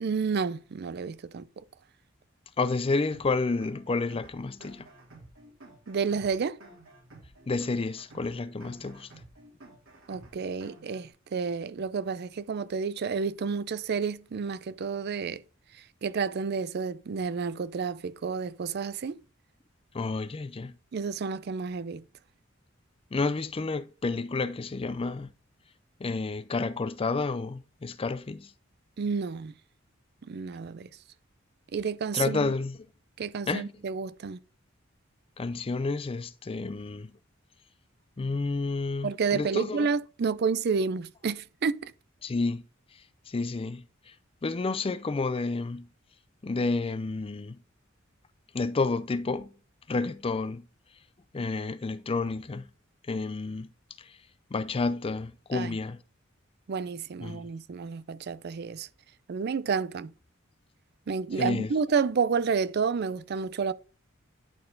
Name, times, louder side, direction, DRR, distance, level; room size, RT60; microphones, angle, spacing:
voice 1, 0.0-1.5 5.9-6.6 10.1-15.4 16.0-19.2 20.9-22.0 29.0-29.5 30.3-30.9 31.7-32.5 33.2-34.4 39.0-41.9 55.5-55.8 56.7-58.9 59.3-60.1 61.1-63.7, right 5 dB, 55° right, 0.4 m, -30 dB
voice 2, 2.6-4.9 7.5-9.1 19.9-20.7 23.1-25.3 26.0-28.5 32.1-32.8 33.5-33.7 35.4-37.1 38.2-39.9 42.2-42.6 43.3-43.8 44.4-45.9 46.4-47.6 48.5-49.5 49.9-50.7 51.3-52.7 53.1-53.7 54.5-56.0 57.2-57.4 61.3-61.7, left 3 dB, 30° left, 0.4 m, -30 dB
sound 1, 3.1-11.1, right 2 dB, 90° right, 3.3 m, -52 dB
10.5 x 4.4 x 3.9 m
head